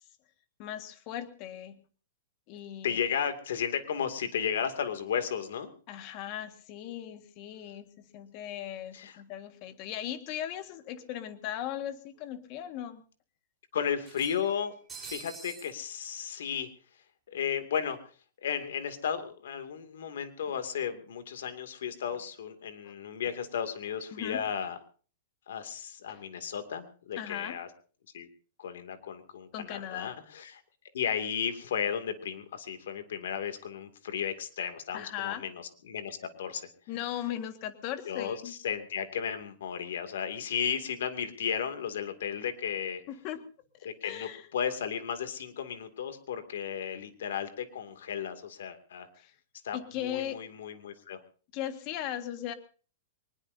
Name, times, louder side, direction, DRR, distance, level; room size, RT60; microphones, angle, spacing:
voice 1, 0.6-1.8 2.5-3.0 5.9-7.9 8.1-13.0 22.8-22.9 24.1-24.4 26.1-26.2 27.2-27.6 29.5-30.1 34.9-35.4 36.9-38.5 43.1-43.4 44.0-44.5 49.2-49.3 49.7-50.4 51.5-52.5, left 11 dB, 35° left, 9 dB, 1.7 m, -38 dB
voice 2, 2.8-5.7 8.9-9.2 13.7-16.7 17.3-18.0 18.4-24.8 25.5-27.7 28.1-28.3 28.6-30.6 30.9-36.7 38.0-43.0 43.8-49.1 49.6-51.2, left 8 dB, 75° left, 8 dB, 2.4 m, -34 dB
sound 1, 10.6-10.7 11.0-11.1 12.2-12.3 12.6-12.7 14.0-15.7, right 5 dB, 10° right, 4.2 m, -46 dB
23.0 x 20.5 x 2.7 m, 0.39 s
hypercardioid pair, 160°, 0 cm